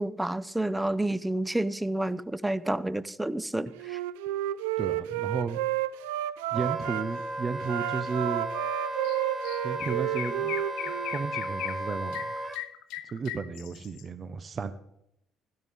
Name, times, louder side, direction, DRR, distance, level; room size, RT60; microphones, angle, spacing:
voice 1, 0.0-4.0, right 1 dB, 10° right, 17 dB, 0.7 m, -29 dB
Wind instrument woodwind instrument, 3.7-7.0 7.6-11.2, right 14 dB, 80° right, 0.4 m, -31 dB
voice 2, 4.8-5.6 6.5-8.4 9.6-10.6 11.1-12.3 13.1-14.7, right 5 dB, 40° right, 13 dB, 0.8 m, -33 dB
Wind instrument woodwind instrument 2, 6.5-12.6, right 1 dB, 25° right, 1.8 m, -35 dB
Chirp tweet, 9.0-9.2 9.4-14.0, left 14 dB, 70° left, 0.7 m, -38 dB
16.0 x 12.5 x 3.6 m, 0.78 s
hypercardioid pair, 55°, 0 cm